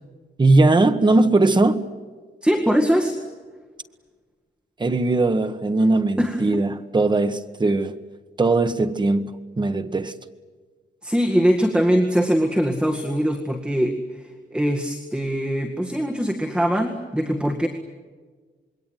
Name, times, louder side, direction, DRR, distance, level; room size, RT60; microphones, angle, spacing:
voice 1, 0.4-1.8 4.8-8.0 8.4-10.1, right 2 dB, 25° right, 1.3 m, -19 dB
voice 2, 2.4-3.2 6.2-6.6 11.0-14.2 14.5-17.7, equal, 5° right, 2.0 m, -22 dB
27.0 x 22.0 x 9.4 m
wide cardioid pair, 160°, 18 cm